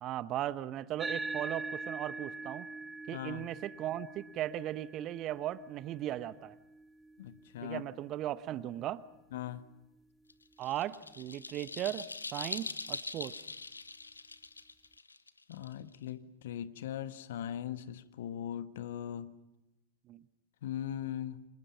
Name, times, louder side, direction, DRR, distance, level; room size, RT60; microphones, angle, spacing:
voice 1, 0.0-2.7 3.1-6.6 7.6-9.0 10.6-13.4 20.1-20.3, right 13 dB, 35° right, 0.9 m, -37 dB
sound 1, 1.0-9.7, right 3 dB, 10° right, 0.9 m, -44 dB
voice 2, 3.1-3.4 7.2-7.8 9.3-9.6 15.5-19.3 20.6-21.4, left 10 dB, 55° left, 1.2 m, -39 dB
sound 2, 10.3-16.1, left 3 dB, 80° left, 1.1 m, -42 dB
29.5 x 27.0 x 5.8 m
figure-of-eight pair, 90°, 0 cm